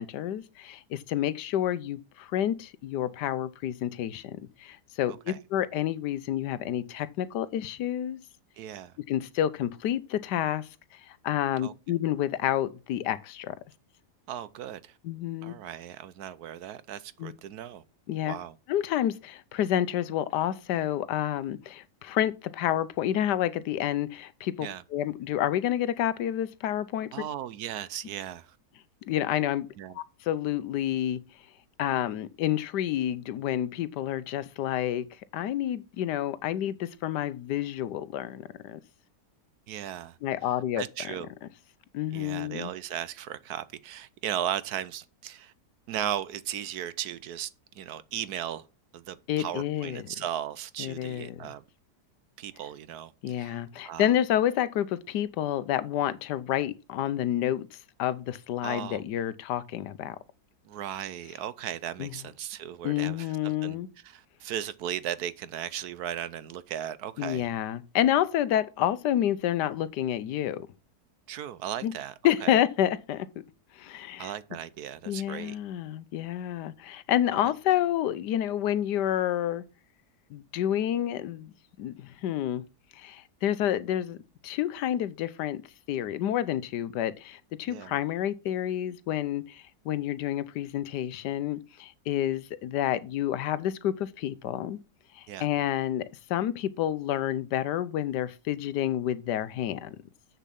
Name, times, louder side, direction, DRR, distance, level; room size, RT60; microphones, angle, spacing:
voice 1, 0.0-8.2 9.1-10.7 11.1-13.6 15.0-15.5 17.2-17.3 18.1-18.3 18.7-27.1 29.1-29.7 29.9-31.2 31.8-35.1 35.3-38.8 40.2-40.8 41.9-42.7 49.3-50.0 50.8-51.4 53.2-57.7 58.0-60.2 62.0-62.1 62.8-63.9 67.2-70.7 71.8-71.9 72.2-73.4 73.8-74.3 75.1-79.6 80.3-81.5 81.8-82.6 83.0-84.2 84.4-85.6 85.9-94.8 95.2-96.0 96.3-100.0, left 11 dB, 80° left, 1.3 m, -29 dB
voice 2, 5.1-5.4 8.6-8.9 11.6-11.7 14.3-15.0 15.4-17.8 18.2-18.6 24.6-24.8 27.1-28.5 29.8-30.0 39.7-40.2 40.8-41.3 42.1-45.5 45.9-47.5 47.7-48.7 48.9-51.6 52.4-54.1 58.6-59.0 60.6-63.8 64.0-67.5 71.3-72.1 72.4-72.6 74.2-75.6 77.3-77.5 87.7-87.9 95.3-95.5, right 10 dB, 70° right, 1.1 m, -36 dB
7.4 x 6.8 x 5.8 m
omnidirectional pair, 1.8 m